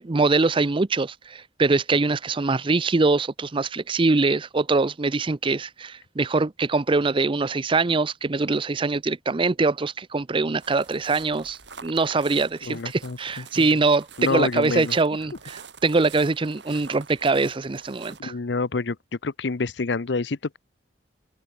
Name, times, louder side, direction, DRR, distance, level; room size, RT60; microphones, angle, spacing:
voice 1, 0.0-18.3, right 3 dB, 30° right, 0.5 m, -23 dB
sound 1, 10.6-18.2, right 5 dB, 75° right, 6.0 m, -46 dB
voice 2, 12.6-13.6 14.2-14.9 18.2-19.0 19.2-20.6, left 3 dB, 70° left, 0.7 m, -27 dB
head